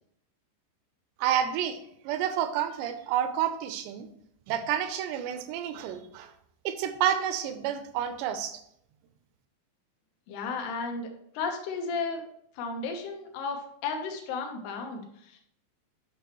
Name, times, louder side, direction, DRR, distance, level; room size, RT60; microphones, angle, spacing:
voice 1, 1.2-1.8 2.1-4.1 4.5-6.3 6.7-8.6, right 10 dB, 80° right, 10 dB, 2.6 m, -29 dB
voice 2, 10.3-11.1 11.3-12.2 12.6-15.0 15.3-15.4, left 4 dB, 75° left, 4 dB, 2.8 m, -33 dB
10.5 x 6.1 x 3.0 m, 0.71 s
omnidirectional pair, 5.3 m